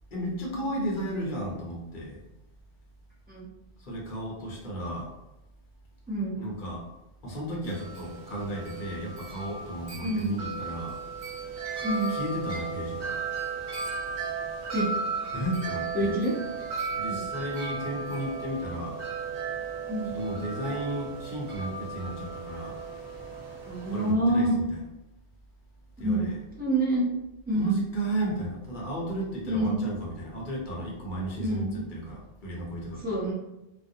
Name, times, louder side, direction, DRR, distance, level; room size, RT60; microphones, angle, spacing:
voice 1, 0.1-2.2 3.8-5.1 6.4-6.9 7.2-11.0 12.1-13.2 15.3-16.1 16.9-19.0 20.1-22.8 23.9-24.5 26.0-26.4 27.5-33.0, right 1 dB, 55° left, -3 dB, 0.8 m, -34 dB
voice 2, 6.1-6.4 10.0-10.4 11.8-12.1 14.7-14.9 15.9-16.3 17.1-17.3 19.9-20.2 23.6-24.5 26.0-26.3 26.6-27.1 27.5-27.8 29.5-29.9 31.4-31.8 33.0-33.3, right 1 dB, 10° right, -6 dB, 0.5 m, -27 dB
Wind chime, 7.6-24.1, right 4 dB, 80° right, 1.0 m, -35 dB
2.4 x 2.1 x 2.6 m, 0.95 s
omnidirectional pair, 1.1 m